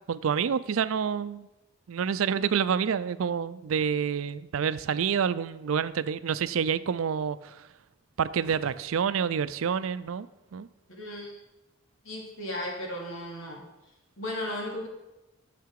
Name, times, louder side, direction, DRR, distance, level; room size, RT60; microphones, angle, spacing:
voice 1, 0.1-1.5 1.9-7.6 8.2-10.3 10.5-10.7, right 7 dB, 85° right, 15 dB, 0.4 m, -28 dB
voice 2, 11.0-11.4 12.0-13.6 14.2-14.9, left 1 dB, 80° left, -1 dB, 2.6 m, -35 dB
10.5 x 6.8 x 4.7 m, 0.97 s
head